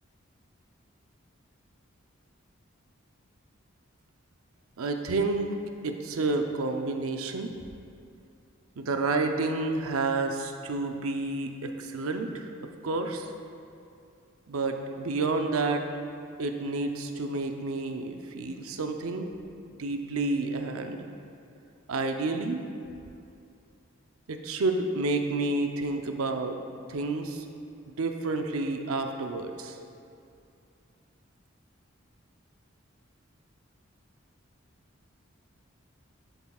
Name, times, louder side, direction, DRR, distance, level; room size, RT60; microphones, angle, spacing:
voice 1, 4.8-5.6 5.8-7.5 8.8-12.5 12.8-13.3 14.5-15.9 16.4-19.3 19.8-21.1 21.9-22.6 24.3-26.6 26.9-27.4 28.0-29.8, right 3 dB, 90° right, 5 dB, 0.6 m, -30 dB
11.0 x 7.9 x 2.4 m, 2.5 s
head